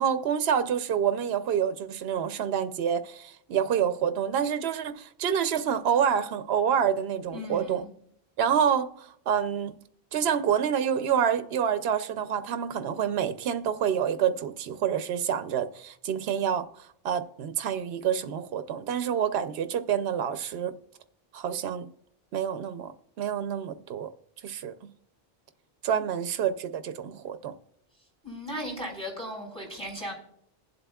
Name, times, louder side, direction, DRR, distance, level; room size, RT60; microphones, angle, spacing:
voice 1, 0.0-7.8 8.4-9.8 10.1-16.7 17.0-20.8 21.3-21.9 22.3-22.9 23.2-24.1 24.4-24.7 25.8-27.5, right 8 dB, 80° right, 0.9 m, -27 dB
voice 2, 7.3-7.9 28.2-30.1, equal, 5° left, 4.2 m, -36 dB
21.5 x 7.7 x 2.3 m
omnidirectional pair, 1.0 m